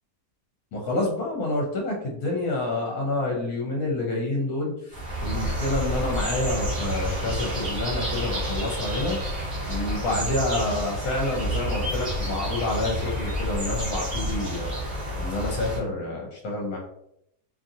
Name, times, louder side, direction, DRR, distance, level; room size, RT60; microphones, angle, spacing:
voice 1, 0.7-9.2 9.7-14.7 15.1-16.8, left 2 dB, 65° left, -1 dB, 1.1 m, -28 dB
sound 1, 4.9-15.8, equal, 40° right, 0.9 m, -29 dB
2.8 x 2.5 x 2.6 m, 0.74 s
omnidirectional pair, 1.8 m